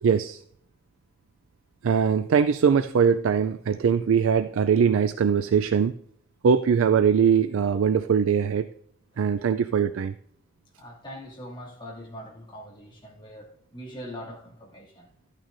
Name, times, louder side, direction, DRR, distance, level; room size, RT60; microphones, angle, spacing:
voice 1, 0.0-0.4 1.8-5.9 6.4-8.7 9.2-10.1, right 6 dB, 80° right, 0.4 m, -21 dB
voice 2, 10.8-15.1, equal, 25° left, 2.4 m, -42 dB
12.5 x 8.9 x 2.6 m
head